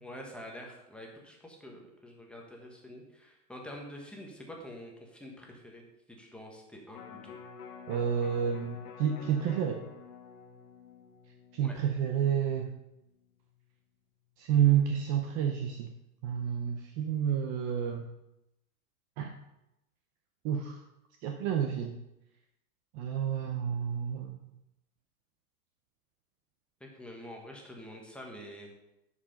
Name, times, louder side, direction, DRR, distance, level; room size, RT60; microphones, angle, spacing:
voice 1, 0.0-5.8 6.1-7.4 11.6-11.8 26.8-28.7, equal, ahead, 0 dB, 1.1 m, -47 dB
Electric guitar, 6.9-13.2 13.5-13.6, left 6 dB, 85° left, 1.8 m, -49 dB
voice 2, 7.9-9.8 11.5-12.7 14.4-15.9 16.2-18.1 19.2-19.3 20.4-20.8 21.2-21.9 22.9-24.4, right 9 dB, 30° right, 4 dB, 0.7 m, -29 dB
9.8 x 5.0 x 5.0 m, 0.89 s
hypercardioid pair, 135°, 45 cm